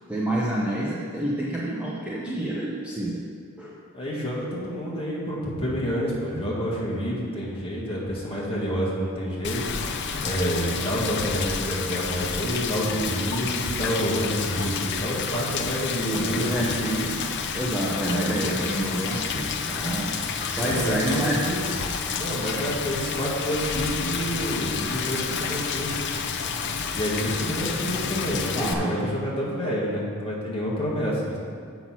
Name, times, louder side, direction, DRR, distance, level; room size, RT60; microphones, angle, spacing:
voice 1, 0.1-3.2 3.6-3.8 16.1-17.2 17.5-20.2 20.5-21.6 22.2-22.7 28.5-29.1, right 1 dB, 5° right, -6 dB, 0.8 m, -28 dB
voice 2, 3.9-9.6 10.2-17.1 18.1-18.5 20.6-21.6 22.2-25.9 26.9-31.4, equal, 25° left, -6 dB, 1.9 m, -28 dB
Rain, 9.4-28.7, left 6 dB, 50° left, 0.6 m, -30 dB
7.7 x 6.2 x 5.9 m, 2.3 s
head